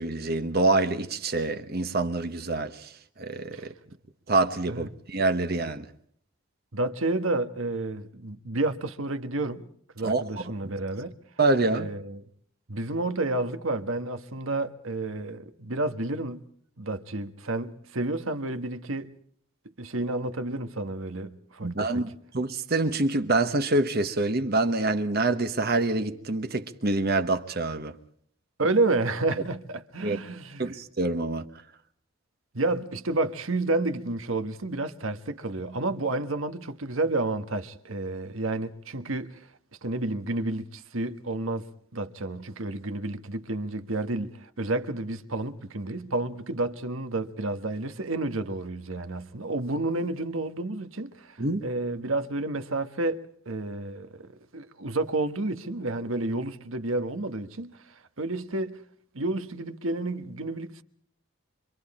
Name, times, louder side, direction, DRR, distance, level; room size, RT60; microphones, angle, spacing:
voice 1, 0.0-2.9 3.2-3.7 4.3-5.9 10.0-10.2 11.4-11.9 21.6-28.0 30.0-30.2 30.6-31.5 51.4-51.6, right 2 dB, 45° right, 1.1 m, -26 dB
voice 2, 6.7-9.7 9.9-11.1 11.7-12.2 12.7-16.4 16.8-19.1 19.8-22.0 28.6-30.7 32.5-39.5 39.8-41.7 41.9-58.8 59.1-60.8, right 2 dB, 70° right, 1.4 m, -30 dB
25.5 x 25.5 x 4.3 m
head